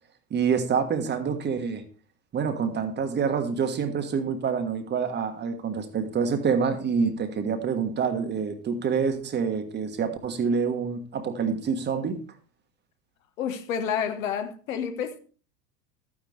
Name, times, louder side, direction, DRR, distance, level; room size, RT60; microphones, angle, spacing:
voice 1, 0.3-1.8 2.3-12.2, right 6 dB, 20° right, 1.5 m, -27 dB
voice 2, 13.4-15.2, left 8 dB, 55° left, 1.5 m, -29 dB
13.5 x 9.6 x 3.4 m
figure-of-eight pair, 85°, 49 cm